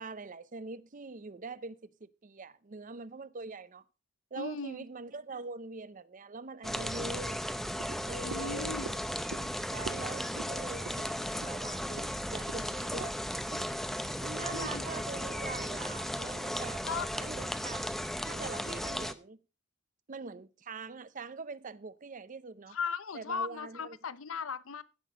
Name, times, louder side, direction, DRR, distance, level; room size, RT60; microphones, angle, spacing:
voice 1, 0.0-3.8 4.3-7.4 8.1-8.8 9.7-13.1 13.5-13.7 14.2-16.8 17.1-17.9 18.2-19.4 20.1-22.8 23.1-24.0, right 4 dB, 40° right, 0.6 m, -43 dB
voice 2, 4.4-4.8 8.2-8.9 14.5-14.8 16.8-17.1 22.7-24.8, left 5 dB, 80° left, 0.7 m, -37 dB
sound 1, 6.6-19.1, equal, ahead, 0.7 m, -36 dB
sound 2, 7.8-14.2 14.6-14.7, right 5 dB, 85° right, 0.5 m, -48 dB
15.5 x 6.1 x 5.0 m
head